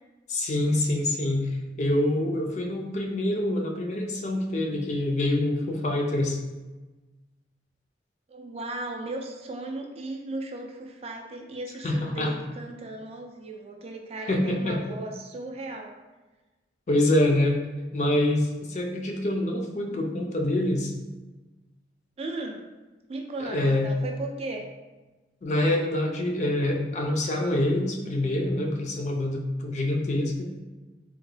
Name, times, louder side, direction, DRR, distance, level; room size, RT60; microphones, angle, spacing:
voice 1, 0.3-6.4 11.8-12.3 14.2-14.8 16.9-17.6 17.9-20.9 23.4-23.9 25.4-30.5, left 1 dB, 40° left, 1 dB, 0.4 m, -26 dB
voice 2, 8.3-15.9 22.2-22.6 23.1-24.6, right 2 dB, 35° right, 2 dB, 0.3 m, -36 dB
3.5 x 2.2 x 3.2 m, 1.2 s
head